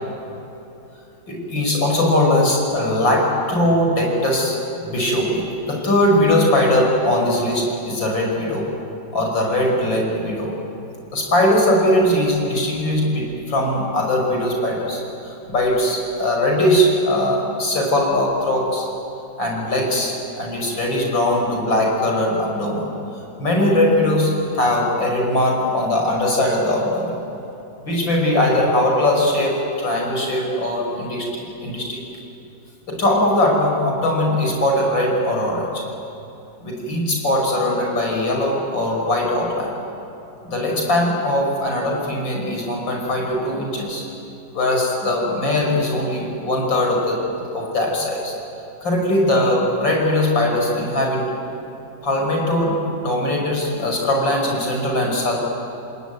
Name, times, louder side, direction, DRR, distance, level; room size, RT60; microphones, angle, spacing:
voice 1, 1.3-8.7 9.1-10.5 11.1-18.9 19.4-22.9 23.4-27.2 27.9-32.0 32.9-35.8 36.6-39.7 40.4-44.0 44.5-47.2 47.5-48.3 48.8-51.2 52.0-55.3, left 1 dB, 80° left, 0 dB, 6.2 m, -20 dB
28.0 x 20.0 x 9.4 m, 3.0 s
omnidirectional pair, 2.0 m